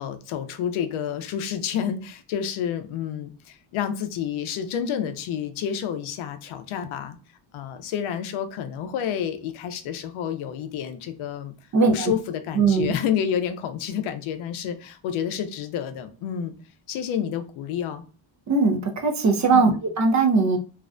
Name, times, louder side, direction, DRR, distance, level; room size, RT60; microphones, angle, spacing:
voice 1, 0.0-7.2 7.5-11.5 11.9-16.5 16.9-18.0 19.5-19.8, left 8 dB, 80° left, 9 dB, 0.5 m, -29 dB
voice 2, 11.7-12.1 12.6-12.9 18.5-19.7 20.0-20.6, right 4 dB, 40° right, 5 dB, 0.4 m, -19 dB
2.5 x 2.1 x 2.4 m, 0.35 s
cardioid pair, 110°, 48 cm